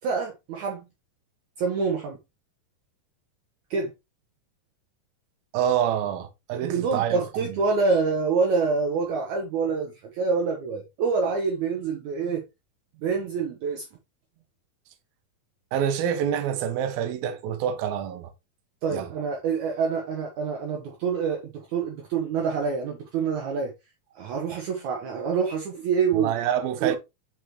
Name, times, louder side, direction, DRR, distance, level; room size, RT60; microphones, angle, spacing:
voice 1, 0.0-0.9 1.6-2.2 3.7-3.9 6.6-12.4 13.0-13.8 18.8-23.7 24.2-26.3 26.8-27.0, right 5 dB, 70° right, 2.0 m, -26 dB
voice 2, 5.5-7.6 15.7-18.3 18.9-19.1 26.1-27.0, right 9 dB, 85° right, 2.6 m, -27 dB
6.0 x 5.6 x 3.0 m
omnidirectional pair, 4.1 m